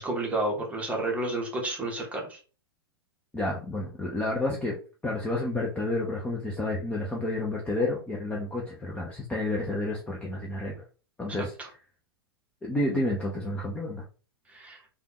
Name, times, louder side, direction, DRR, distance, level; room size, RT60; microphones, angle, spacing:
voice 1, 0.0-2.4 11.6-11.7 14.5-14.8, right 2 dB, 10° right, 0 dB, 1.0 m, -31 dB
voice 2, 3.3-4.8 5.0-10.8 11.2-11.5 12.6-14.0, left 2 dB, 10° left, -2 dB, 0.5 m, -30 dB
3.4 x 2.3 x 2.9 m, 0.37 s
figure-of-eight pair, 100°, 13 cm